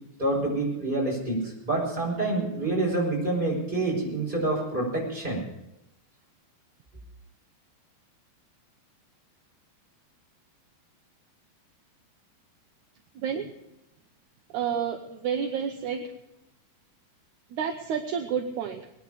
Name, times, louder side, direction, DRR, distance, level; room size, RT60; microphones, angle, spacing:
voice 1, 0.2-5.5, right 2 dB, 15° right, -3 dB, 5.6 m, -27 dB
voice 2, 13.2-13.5 14.5-16.0 17.5-18.8, right 7 dB, 70° right, 5 dB, 2.0 m, -30 dB
20.0 x 10.5 x 5.0 m, 0.89 s
omnidirectional pair, 4.2 m